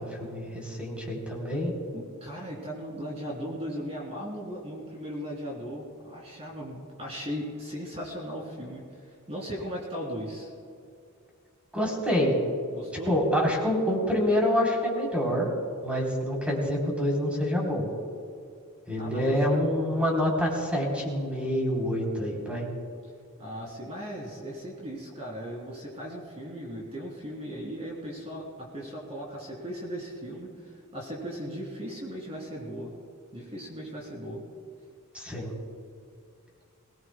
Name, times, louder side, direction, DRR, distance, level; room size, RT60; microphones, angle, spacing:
voice 1, 0.0-1.7 11.7-12.4 13.1-15.5 15.8-17.9 18.9-22.6 35.1-35.5, equal, 5° right, -2 dB, 3.5 m, -27 dB
voice 2, 1.9-10.5 12.7-13.2 18.9-19.3 23.4-32.9 33.3-34.4, equal, 30° right, -3 dB, 2.9 m, -37 dB
22.5 x 18.5 x 2.2 m, 2.4 s
head